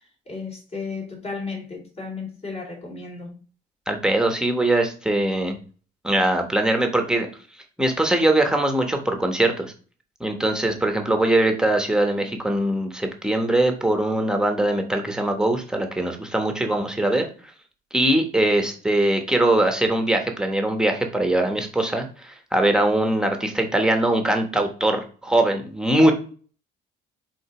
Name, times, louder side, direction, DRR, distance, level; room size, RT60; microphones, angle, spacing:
voice 1, 0.3-3.3, left 4 dB, 40° left, 3.2 m, -34 dB
voice 2, 3.9-5.6 6.0-7.3 7.8-9.7 10.2-17.3 17.9-26.1, right 1 dB, 5° right, 1.2 m, -21 dB
5.1 x 4.0 x 5.0 m
cardioid pair, 110°, 17 cm